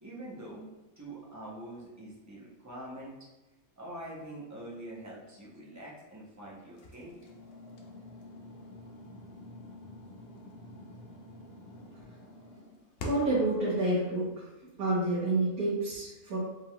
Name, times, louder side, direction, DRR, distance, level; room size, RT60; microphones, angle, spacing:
voice 1, 0.0-0.7 1.0-3.1 3.8-7.1, right 1 dB, 25° right, -4 dB, 0.4 m, -44 dB
sound 1, 6.8-13.4, left 2 dB, 60° left, 0.6 m, -46 dB
voice 2, 13.0-14.3 14.8-16.4, right 2 dB, 75° right, -9 dB, 1.5 m, -28 dB
5.0 x 3.6 x 2.3 m, 1.1 s
omnidirectional pair, 1.6 m